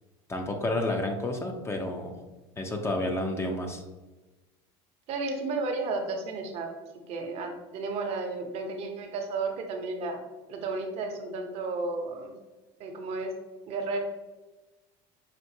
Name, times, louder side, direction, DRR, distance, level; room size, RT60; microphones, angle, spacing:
voice 1, 0.3-2.1 2.6-3.8, left 1 dB, 20° left, 3 dB, 0.6 m, -30 dB
voice 2, 5.1-6.7 7.1-10.2 10.5-12.3 12.8-13.3 13.7-14.0, right 3 dB, 55° right, 4 dB, 0.8 m, -33 dB
5.8 x 2.5 x 2.7 m, 1.2 s
supercardioid pair, 110°, 13 cm